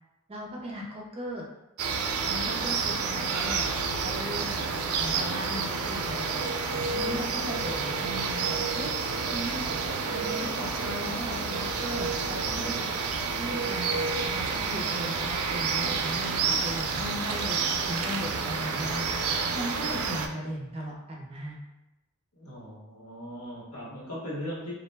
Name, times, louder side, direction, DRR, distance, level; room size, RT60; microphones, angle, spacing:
voice 1, 0.3-1.5 2.3-3.6 4.0-4.5 5.0-6.4 6.9-9.0 9.3-12.8 13.4-19.1 19.5-21.6, equal, 25° right, -2 dB, 0.5 m, -37 dB
sound 1, 1.8-20.3, right 5 dB, 90° right, 0.3 m, -29 dB
voice 2, 22.3-24.8, equal, 90° left, -6 dB, 1.0 m, -38 dB
2.3 x 2.1 x 3.2 m, 0.97 s
head